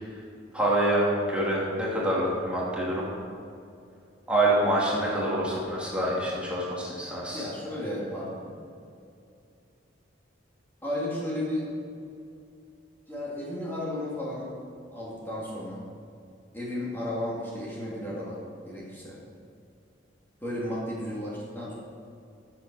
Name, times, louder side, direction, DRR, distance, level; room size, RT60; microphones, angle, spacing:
voice 1, 0.5-3.0 4.3-7.5, right 1 dB, 5° right, -6 dB, 2.6 m, -26 dB
voice 2, 7.3-8.5 10.8-11.8 13.1-14.5 14.9-15.8 16.5-19.2 20.4-21.7, left 1 dB, 10° left, -6 dB, 2.5 m, -33 dB
14.0 x 7.5 x 6.2 m, 2.5 s
head